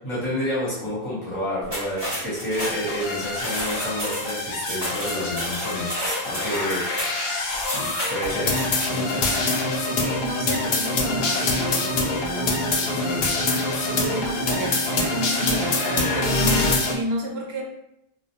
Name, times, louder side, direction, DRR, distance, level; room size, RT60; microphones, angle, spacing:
voice 1, 0.0-6.8 7.6-8.5 8.9-9.5, equal, 30° left, -8 dB, 1.0 m, -29 dB
sound 1, 1.6-9.7, equal, 25° right, 0.9 m, -32 dB
sound 2, 2.6-16.9, left 2 dB, 75° left, 0.8 m, -25 dB
voice 2, 9.8-17.6, right 1 dB, 85° right, -1 dB, 0.9 m, -31 dB
2.3 x 2.3 x 2.8 m, 0.80 s
omnidirectional pair, 1.0 m